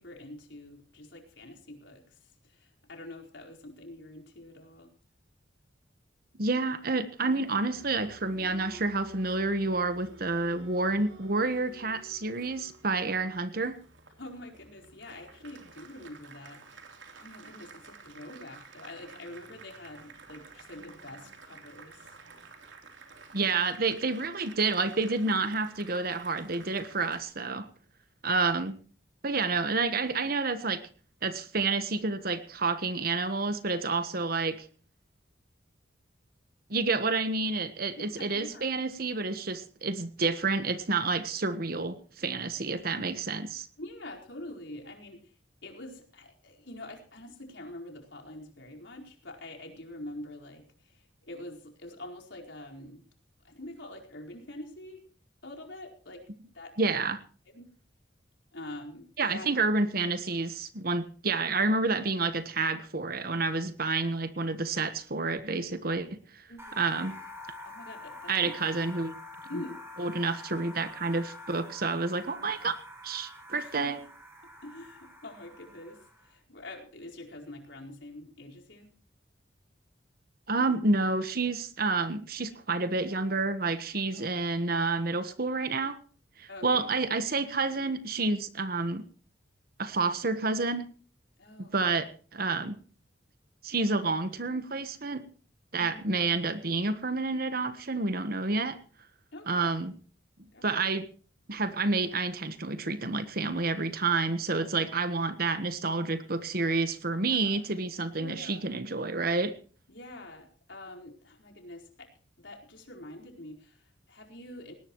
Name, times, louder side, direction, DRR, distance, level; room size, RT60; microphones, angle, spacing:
voice 1, 0.0-4.9 14.2-22.1 38.0-38.7 43.8-53.0 53.4-55.0 55.4-56.3 56.5-56.9 57.5-57.7 58.5-59.5 66.5-66.9 67.6-68.5 69.5-69.8 73.5-73.9 74.6-78.9 84.1-84.3 86.5-86.8 91.4-91.7 95.8-96.1 99.3-99.7 100.5-100.9 107.2-107.6 108.1-108.7 109.9-112.1 112.4-114.7, left 1 dB, 80° left, 0 dB, 4.6 m, -45 dB
voice 2, 6.4-13.7 23.3-27.7 28.2-28.8 29.2-30.8 31.2-34.7 36.7-43.7 56.8-57.2 59.2-66.1 66.8-67.1 68.3-69.2 70.0-72.8 73.0-74.0 80.5-86.0 86.4-89.0 89.8-90.9 91.6-92.7 93.6-95.2 95.7-98.8 99.5-99.9 100.6-101.1 101.5-109.5, right 3 dB, 50° right, 11 dB, 1.3 m, -29 dB
Applause, 7.2-27.2, right 3 dB, 90° right, 3.5 m, -51 dB
sound 1, 66.6-76.3, left 2 dB, 15° right, 6.8 m, -47 dB
19.5 x 18.5 x 3.1 m, 0.40 s
head